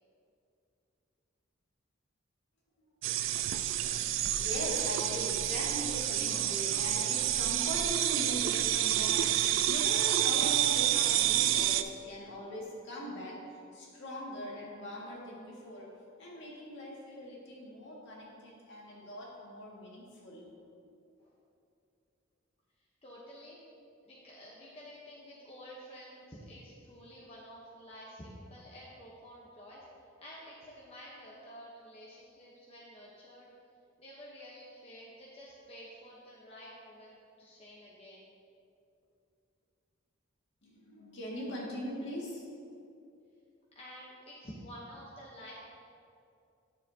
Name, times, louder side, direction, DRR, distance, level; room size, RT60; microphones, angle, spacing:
sound 1, 3.0-11.8, right 12 dB, 70° right, 0.3 m, -29 dB
voice 1, 4.1-13.4 13.7-15.9 16.2-20.5 40.6-42.4, equal, 60° left, -5 dB, 1.9 m, -41 dB
voice 2, 22.8-23.6 24.0-29.9 30.2-33.5 34.0-38.3 43.7-45.5, equal, 30° left, -5 dB, 0.9 m, -50 dB
10.0 x 6.8 x 2.8 m, 2.5 s
head